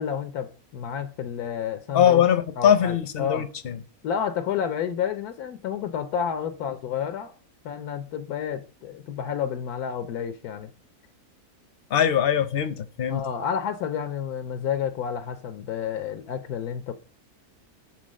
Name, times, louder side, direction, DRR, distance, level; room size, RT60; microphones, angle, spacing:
voice 1, 0.0-2.2 2.6-3.4 4.0-7.3 7.6-10.7 13.1-16.9, left 8 dB, 85° left, 1.2 m, -30 dB
voice 2, 1.9-3.8 11.9-13.3, left 9 dB, 50° left, 0.7 m, -21 dB
7.6 x 3.9 x 6.3 m
omnidirectional pair, 1.6 m